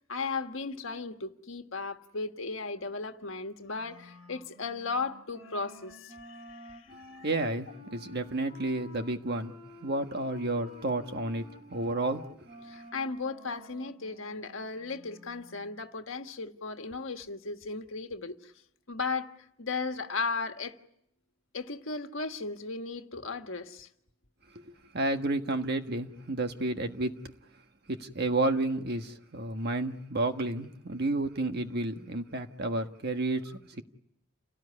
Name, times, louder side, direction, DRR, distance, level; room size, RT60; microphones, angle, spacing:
voice 1, 0.1-7.3 12.6-18.5 18.9-19.3 19.6-20.8 21.5-23.9, left 4 dB, 65° left, 1.6 m, -36 dB
Wind instrument woodwind instrument, 3.7-15.8, left 1 dB, 30° right, 4.6 m, -51 dB
voice 2, 7.2-9.5 9.8-11.4 11.7-12.3 24.6-27.2 27.9-33.8, right 2 dB, 50° right, 1.4 m, -31 dB
29.0 x 18.0 x 9.8 m
head